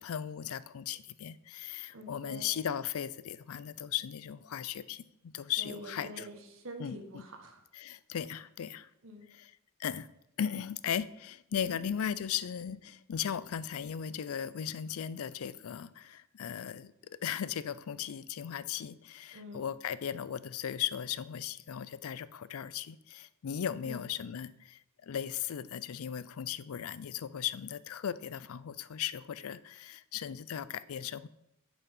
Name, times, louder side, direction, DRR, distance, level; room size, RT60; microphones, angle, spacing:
voice 1, 0.0-6.3 6.8-7.0 7.7-8.9 9.3-9.5 9.8-10.1 10.4-31.3, left 9 dB, 75° left, 0.4 m, -37 dB
voice 2, 1.9-2.5 5.6-7.6 9.0-9.2 11.7-11.9 19.3-19.6 23.8-24.0, right 1 dB, 60° right, 1.5 m, -46 dB
7.1 x 7.1 x 5.3 m
head